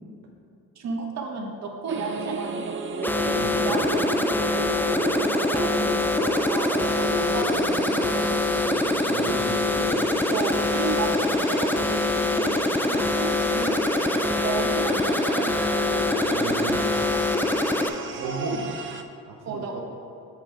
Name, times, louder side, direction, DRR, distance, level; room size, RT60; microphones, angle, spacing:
voice 1, 0.7-3.1 3.5-8.4 9.8-10.0 10.3-13.8 14.4-16.2 18.1-18.7 19.4-19.8, right 3 dB, 65° right, 0 dB, 1.3 m, -33 dB
sound 1, 1.9-19.0, right 4 dB, 40° right, 0.6 m, -34 dB
sound 2, 3.0-17.9, left 2 dB, 5° left, 0.4 m, -24 dB
voice 2, 3.3-3.6 7.0-7.2 9.1-9.8 16.3-17.0 18.2-18.6 19.2-19.8, right 4 dB, 85° right, -2 dB, 0.9 m, -34 dB
7.5 x 4.9 x 4.6 m, 2.7 s
cardioid pair, 90°, 30 cm